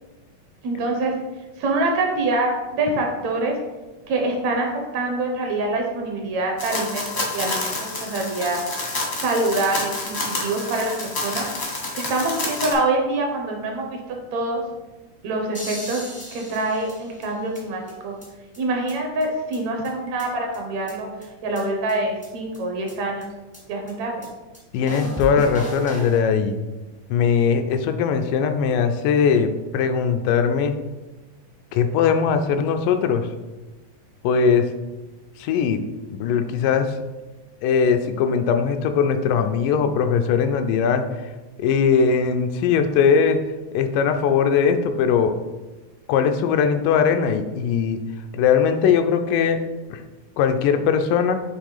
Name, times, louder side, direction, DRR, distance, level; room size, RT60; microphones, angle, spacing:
voice 1, 0.6-1.1 1.6-3.6 4.1-4.7 4.9-8.6 9.1-11.5 11.9-14.6 15.2-18.2 18.6-21.1 21.4-23.3 23.7-24.3, right 2 dB, 70° right, 2 dB, 2.0 m, -25 dB
sound 1, 6.6-12.7, left 2 dB, 60° left, 0.7 m, -29 dB
sound 2, 15.5-17.6 17.9-18.0 18.2-18.3 18.5-18.6 18.9-19.0 19.2-19.3 19.5-19.6 19.8-20.6 20.9-21.0 21.2-21.3 21.5-21.6 21.9-22.0 22.2-22.3 22.5-22.6 22.9-23.0 23.2-23.3 23.5-23.6 23.9-24.0 24.2-24.3 24.5-24.6 24.9-26.2, right 1 dB, 10° left, 0.5 m, -35 dB
voice 2, 24.7-26.6 27.1-30.8 31.7-33.3 34.2-34.7 35.4-35.8 36.1-36.9 37.6-41.1 41.6-43.4 43.7-45.3 46.1-48.0 48.3-49.6 49.9-50.0 50.4-51.4, left 6 dB, 90° left, 7 dB, 2.2 m, -20 dB
7.4 x 3.1 x 4.9 m, 1.2 s
omnidirectional pair, 3.6 m